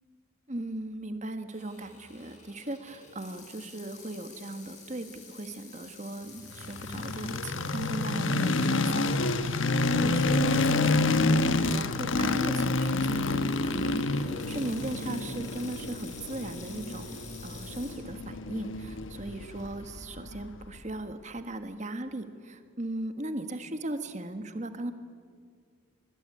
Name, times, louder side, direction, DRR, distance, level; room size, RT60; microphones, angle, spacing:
voice 1, 0.5-11.3 11.6-24.9, right 1 dB, 35° right, 8 dB, 1.6 m, -38 dB
Water tap faucet / Sink (filling or washing), 1.5-9.9 10.4-10.5 11.2-11.5 13.1-18.0, left 4 dB, 35° left, 5.4 m, -50 dB
sound 1, 6.5-20.6, left 2 dB, 65° left, 1.2 m, -28 dB
22.5 x 22.0 x 9.9 m, 2.1 s
head